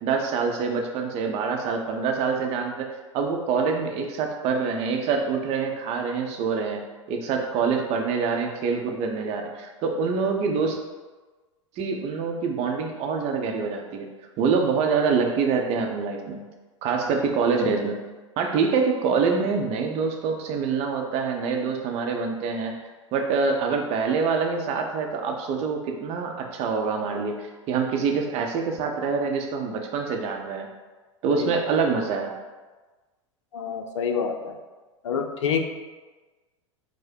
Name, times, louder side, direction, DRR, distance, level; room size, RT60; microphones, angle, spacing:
voice 1, 0.0-2.9 3.1-6.8 7.1-10.8 11.8-14.1 14.4-16.4 16.8-18.0 18.4-22.7 23.1-30.7 31.2-32.3, right 5 dB, 40° right, 2 dB, 0.7 m, -25 dB
voice 2, 31.3-31.7 33.5-34.5 35.0-35.6, left 6 dB, 70° left, 4 dB, 0.5 m, -27 dB
4.6 x 2.1 x 4.3 m, 1.2 s
figure-of-eight pair, 85°, 16 cm